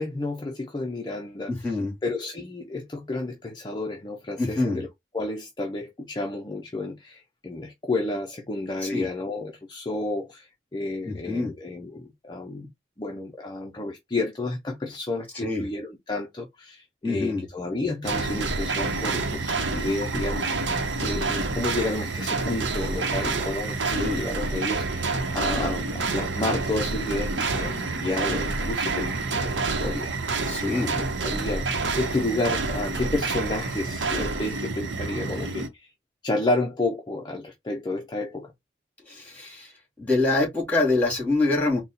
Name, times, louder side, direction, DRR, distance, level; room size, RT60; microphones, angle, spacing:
voice 1, 0.0-12.7 13.0-35.9 36.2-38.5, left 2 dB, 25° left, 0.5 m, -31 dB
voice 2, 4.4-4.8 8.8-9.1 11.0-11.5 15.4-15.6 17.0-17.4 24.0-24.2 30.4-30.9 39.1-39.7 40.0-41.8, left 2 dB, 10° left, 2.1 m, -25 dB
sound 1, 18.0-35.7, right 3 dB, 80° right, 0.8 m, -28 dB
4.0 x 2.1 x 3.9 m
head